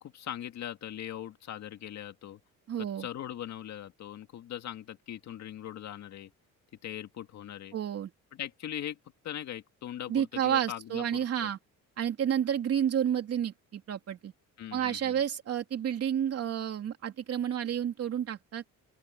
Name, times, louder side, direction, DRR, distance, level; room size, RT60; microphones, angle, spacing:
voice 1, 0.0-2.4 2.8-6.3 6.8-7.7 8.3-9.0 9.2-11.5 14.6-15.2, left 11 dB, 55° left, 2.1 m, -40 dB
voice 2, 2.7-3.1 7.7-8.1 10.1-11.6 12.0-14.3 14.7-18.6, right 9 dB, 45° right, 3.1 m, -30 dB
open air
cardioid pair, 150°, 33 cm